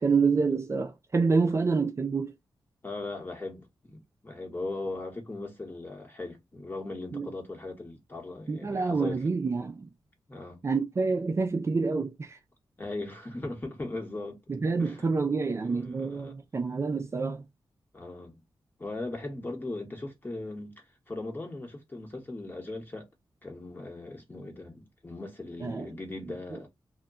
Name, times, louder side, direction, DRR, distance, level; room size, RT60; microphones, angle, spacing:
voice 1, 0.0-2.3 7.1-7.3 8.5-9.9 10.6-12.4 14.5-17.4 25.6-25.9, right 4 dB, 30° right, 0.4 m, -27 dB
voice 2, 2.8-9.2 10.3-10.6 12.8-14.4 14.8-15.1 15.5-16.4 17.9-18.4 18.8-23.1 23.4-26.7, left 2 dB, 20° left, 1.1 m, -39 dB
2.1 x 2.1 x 3.6 m
wide cardioid pair, 95°, 9 cm